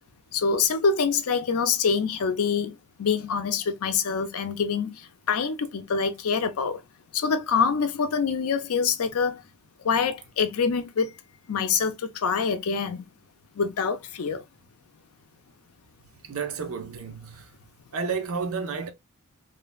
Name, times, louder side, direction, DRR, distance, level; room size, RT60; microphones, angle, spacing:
voice 1, 0.3-6.8 7.1-9.4 9.8-11.1 11.5-13.0 13.6-14.4, left 5 dB, 80° left, 0.5 m, -25 dB
voice 2, 16.2-17.5 17.9-18.9, right 5 dB, 70° right, 0.5 m, -31 dB
3.2 x 2.1 x 2.2 m
head